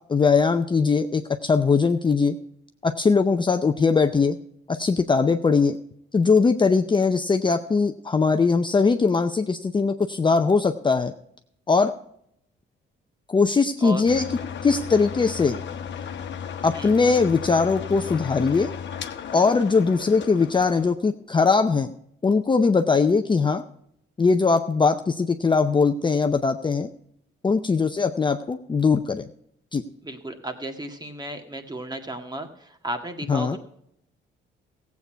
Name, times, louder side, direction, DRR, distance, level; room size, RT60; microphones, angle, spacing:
voice 1, 0.1-2.4 2.8-4.4 4.7-5.8 6.1-11.1 11.7-11.9 13.3-14.2 14.6-15.6 16.6-18.7 19.3-21.9 22.2-23.6 24.2-26.9 27.4-29.3 29.7-29.8 33.3-33.6, left 4 dB, 25° left, 7 dB, 0.6 m, -21 dB
sound 1, 14.1-20.9, left 7 dB, 65° left, 1.1 m, -35 dB
voice 2, 30.0-33.6, right 1 dB, 20° right, 6 dB, 1.8 m, -34 dB
15.5 x 8.4 x 4.5 m, 0.73 s
cardioid pair, 90°, 20 cm